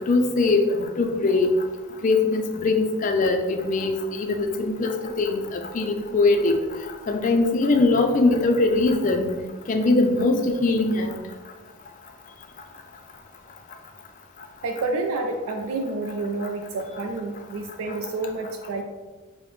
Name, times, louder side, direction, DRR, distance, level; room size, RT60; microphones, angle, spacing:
voice 1, 0.1-1.5 2.0-6.6 7.1-9.4 9.7-11.1, left 3 dB, 35° left, 4 dB, 0.3 m, -21 dB
voice 2, 14.6-18.8, right 3 dB, 85° right, 3 dB, 0.3 m, -29 dB
4.8 x 2.0 x 3.0 m, 1.3 s
head